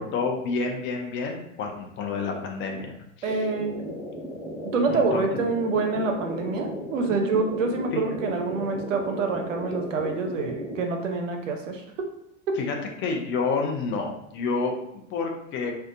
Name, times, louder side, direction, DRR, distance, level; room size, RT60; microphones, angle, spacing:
voice 1, 0.0-2.9 3.2-3.4 4.9-5.3 7.9-8.0 12.6-15.7, left 4 dB, 35° left, 2 dB, 0.5 m, -29 dB
voice 2, 3.2-3.8 4.7-12.1 12.5-12.6, right 4 dB, 85° right, 5 dB, 0.6 m, -26 dB
sound 1, 3.3-10.8, left 1 dB, 5° right, 1.5 m, -36 dB
2.6 x 2.2 x 2.5 m, 0.78 s
hypercardioid pair, 95°, 37 cm